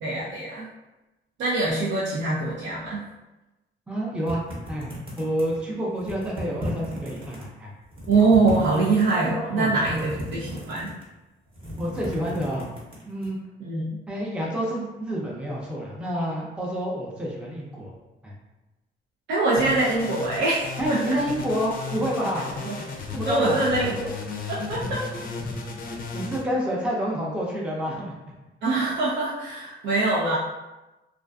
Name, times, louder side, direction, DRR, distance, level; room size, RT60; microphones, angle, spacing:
voice 1, 0.0-0.7 1.4-3.0 8.1-10.9 13.6-14.0 19.3-21.2 22.6-22.7 23.3-24.1 24.5-25.0 28.6-30.4, right 3 dB, 70° right, -7 dB, 0.6 m, -23 dB
voice 2, 3.9-7.7 9.5-10.1 11.8-12.7 13.1-13.4 14.1-17.9 18.2-18.3 20.8-22.5 23.0-23.9 24.7-24.9 25.4-25.8 26.1-28.1, equal, 5° right, -4 dB, 0.5 m, -29 dB
sound 1, 4.3-5.6 6.0-7.4 7.8-9.3 9.8-11.1 11.5-13.3, equal, 25° right, 0.9 m, -36 dB
sound 2, 19.6-26.4, left 4 dB, 45° left, 0.4 m, -34 dB
2.4 x 2.4 x 2.3 m, 1.0 s
cardioid pair, 90°, 20 cm